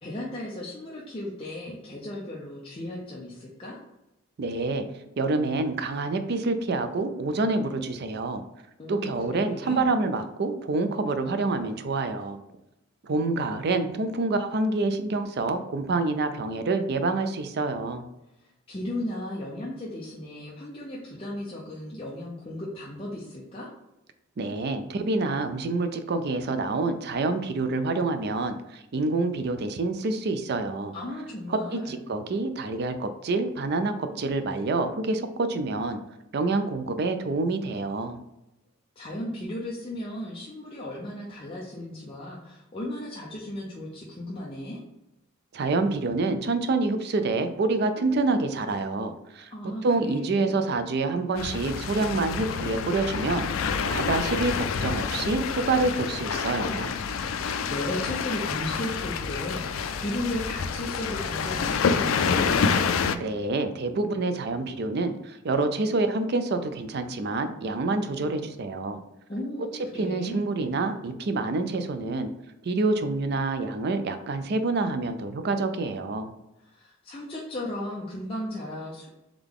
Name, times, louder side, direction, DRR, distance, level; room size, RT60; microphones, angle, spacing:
voice 1, 0.0-3.8 8.8-9.9 18.4-23.7 30.9-32.0 39.0-44.8 49.5-50.6 57.7-62.7 69.3-70.4 76.6-79.1, left 1 dB, 30° left, -5 dB, 0.6 m, -35 dB
voice 2, 4.4-4.8 5.2-8.4 8.9-12.4 13.0-18.0 24.4-31.0 31.5-36.0 36.3-38.2 45.5-56.9 63.2-69.0 70.0-72.3 72.6-76.3, right 3 dB, 55° right, 9 dB, 0.4 m, -27 dB
sound 1, 51.4-63.2, left 6 dB, 80° left, 0.4 m, -28 dB
3.7 x 3.4 x 3.6 m, 0.92 s
head